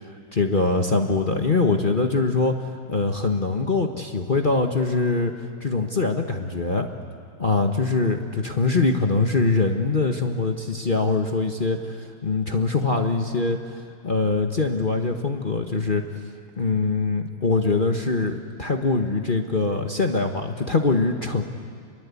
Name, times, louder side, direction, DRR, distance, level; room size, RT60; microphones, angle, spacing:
voice 1, 0.3-2.5 2.9-5.3 5.6-6.9 7.4-16.0 16.6-21.4, left 3 dB, 30° left, 4 dB, 1.1 m, -23 dB
29.5 x 22.5 x 8.4 m, 2.2 s
omnidirectional pair, 2.3 m